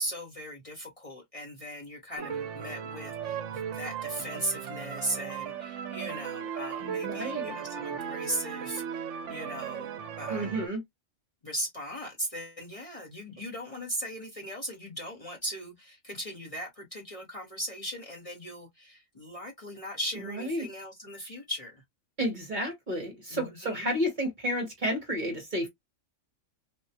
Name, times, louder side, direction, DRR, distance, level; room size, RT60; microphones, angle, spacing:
voice 1, 0.0-9.9 10.2-10.6 11.4-21.8 23.3-23.9, right 1 dB, 30° left, 1.0 m, -38 dB
sound 1, 2.2-10.7, right 8 dB, 70° right, 0.9 m, -36 dB
voice 2, 6.8-7.5 10.3-10.8 20.4-20.7 22.2-25.7, equal, 40° right, 1.1 m, -31 dB
3.5 x 2.3 x 2.7 m
omnidirectional pair, 1.4 m